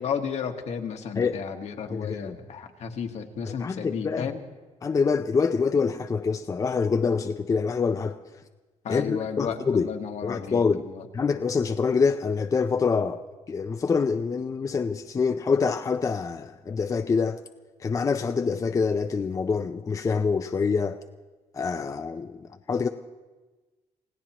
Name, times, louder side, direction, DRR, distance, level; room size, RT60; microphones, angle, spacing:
voice 1, 0.0-4.4 8.8-11.1, left 7 dB, 65° left, 5 dB, 1.3 m, -33 dB
voice 2, 1.9-2.3 3.6-4.3 4.8-8.2 8.9-9.9 10.2-10.8 11.1-17.4 17.8-21.0 21.5-22.9, left 5 dB, 25° left, 7 dB, 0.4 m, -26 dB
28.0 x 17.0 x 2.9 m, 1.2 s
cardioid pair, 140°, 12 cm